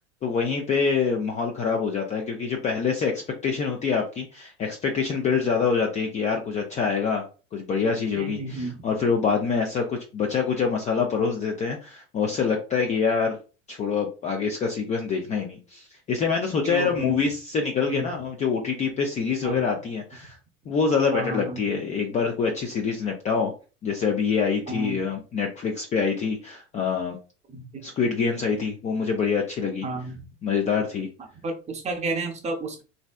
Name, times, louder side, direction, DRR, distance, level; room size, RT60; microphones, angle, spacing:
voice 1, 0.2-7.3 7.5-13.4 13.7-20.4 20.7-23.5 23.8-27.2 27.8-29.9 30.4-31.1, left 5 dB, 20° left, 1 dB, 0.4 m, -25 dB
voice 2, 8.2-8.9 16.6-17.3 17.8-18.2 19.4-19.6 21.1-21.6 24.7-25.0 27.5-27.6 29.8-30.2 31.4-32.8, right 2 dB, 20° right, 4 dB, 0.7 m, -32 dB
3.1 x 2.6 x 2.2 m, 0.34 s
hypercardioid pair, 90°, 37 cm